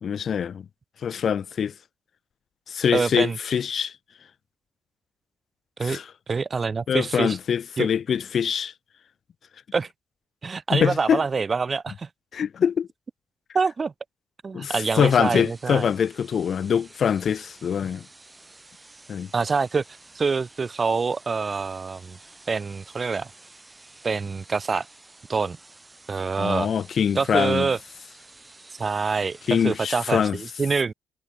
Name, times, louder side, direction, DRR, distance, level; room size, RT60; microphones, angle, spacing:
voice 1, 0.0-0.6 1.0-1.7 2.7-3.9 5.8-6.1 6.9-8.7 10.7-11.2 12.3-12.9 14.5-18.0 19.1-19.3 26.4-27.7 29.5-30.4, left 7 dB, 55° left, 1.7 m, -24 dB
voice 2, 2.9-3.4 5.8-6.0 6.3-7.4 7.8-7.9 9.7-9.9 10.4-12.1 13.5-13.9 14.4-15.9 19.3-19.8 20.2-22.2 22.5-23.3 24.0-24.9 25.3-25.6 26.1-26.7 27.2-27.8 28.8-30.9, right 4 dB, 35° right, 1.7 m, -25 dB
sound 1, 14.8-30.3, right 2 dB, 20° right, 5.8 m, -51 dB
cardioid pair, 90°, 0 cm